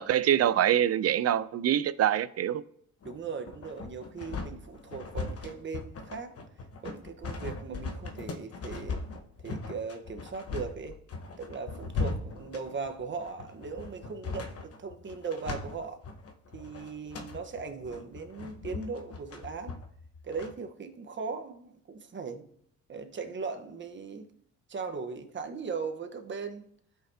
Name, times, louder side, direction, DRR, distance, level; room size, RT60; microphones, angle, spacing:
voice 1, 0.0-2.6, right 10 dB, 55° right, 0.5 m, -25 dB
sound 1, 3.0-20.5, left 4 dB, 50° left, 1.1 m, -39 dB
voice 2, 3.0-6.4 6.8-9.0 9.4-11.0 11.4-16.0 16.5-19.8 20.2-22.5 22.9-24.3 24.7-26.7, right 5 dB, 40° right, 1.2 m, -38 dB
16.0 x 5.8 x 2.8 m
cardioid pair, 90°, 30 cm